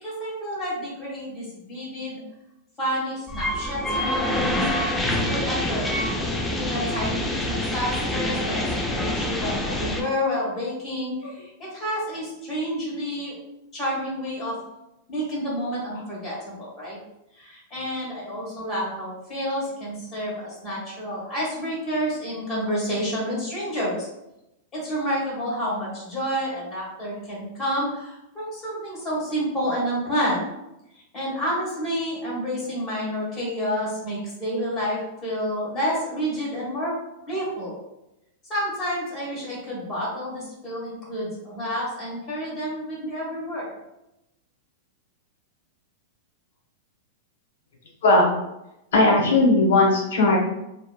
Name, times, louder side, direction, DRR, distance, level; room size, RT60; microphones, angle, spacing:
voice 1, 0.0-2.2 2.8-5.9 6.5-8.6 8.9-13.3 13.7-14.5 15.1-17.0 17.3-24.1 24.7-30.4 31.1-36.9 37.3-37.8 38.5-43.7, equal, 25° left, -6 dB, 1.3 m, -29 dB
sound 1, 3.3-10.0, left 1 dB, 10° left, 0.3 m, -26 dB
voice 2, 48.0-48.3 48.9-50.4, left 2 dB, 85° left, -1 dB, 0.9 m, -17 dB
2.8 x 2.1 x 2.3 m, 0.89 s
supercardioid pair, 140°, 0 cm